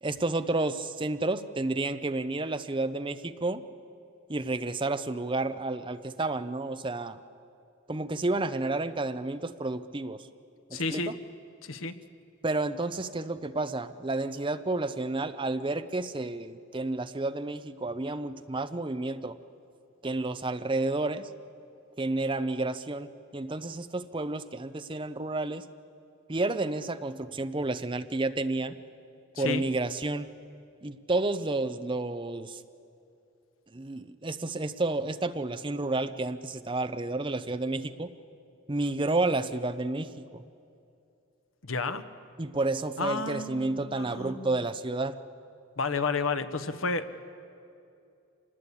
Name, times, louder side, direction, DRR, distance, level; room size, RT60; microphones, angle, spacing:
voice 1, 0.0-3.6 4.3-7.2 7.9-10.2 10.7-11.0 12.4-19.4 20.0-21.3 22.0-23.1 23.3-25.6 26.3-28.8 29.4-30.3 30.8-32.6 33.7-38.1 38.7-40.4 42.4-45.2, right 2 dB, 25° right, 11 dB, 0.6 m, -31 dB
voice 2, 10.7-11.1 11.6-11.9 29.4-29.6 41.6-42.0 43.0-44.6 45.8-47.2, left 4 dB, 80° left, 10 dB, 1.1 m, -31 dB
26.5 x 19.5 x 8.5 m, 2.6 s
head